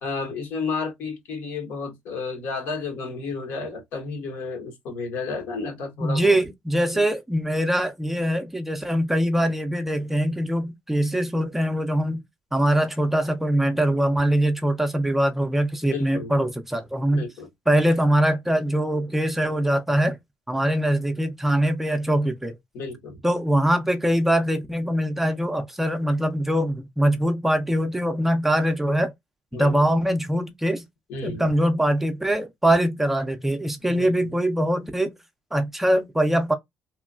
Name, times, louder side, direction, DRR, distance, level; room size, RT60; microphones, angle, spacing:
voice 1, 0.0-6.4 6.9-7.0 15.8-16.3 17.1-17.5 22.7-23.3 29.5-29.9 31.1-31.5 33.9-34.3, left 4 dB, 75° left, 1.1 m, -32 dB
voice 2, 6.0-12.2 12.5-17.3 17.7-20.2 20.5-22.5 23.2-29.1 29.5-30.8 31.2-35.1 35.5-36.5, right 1 dB, 5° right, 0.4 m, -23 dB
2.9 x 2.2 x 2.4 m
cardioid pair, 125°, 3 cm